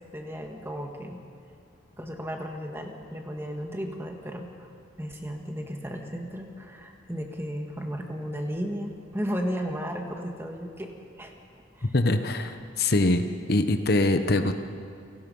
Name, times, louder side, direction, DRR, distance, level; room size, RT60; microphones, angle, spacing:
voice 1, 0.1-1.2 2.0-4.7 5.0-10.9 11.2-11.3 11.8-11.9, equal, 10° right, 2 dB, 1.8 m, -34 dB
voice 2, 11.8-13.2 13.5-14.5, left 2 dB, 55° left, 8 dB, 1.0 m, -23 dB
28.5 x 18.0 x 5.5 m, 2.2 s
head